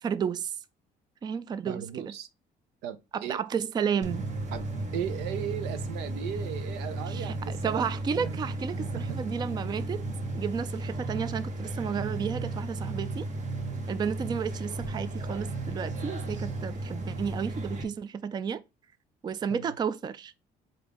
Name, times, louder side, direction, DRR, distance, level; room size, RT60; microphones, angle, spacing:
voice 1, 0.0-0.5 1.2-2.1 3.1-4.3 7.1-7.3 7.6-10.0 10.3-13.3 13.9-18.6 19.2-20.3, right 7 dB, 25° right, 0.3 m, -32 dB
voice 2, 1.7-2.3 2.8-3.4 4.5-4.7 4.9-8.4 8.7-9.2 19.5-19.7, right 9 dB, 90° right, 0.7 m, -37 dB
sound 1, 4.0-17.8, right 2 dB, 45° right, 1.2 m, -34 dB
5.6 x 2.6 x 3.5 m
cardioid pair, 110°, 17 cm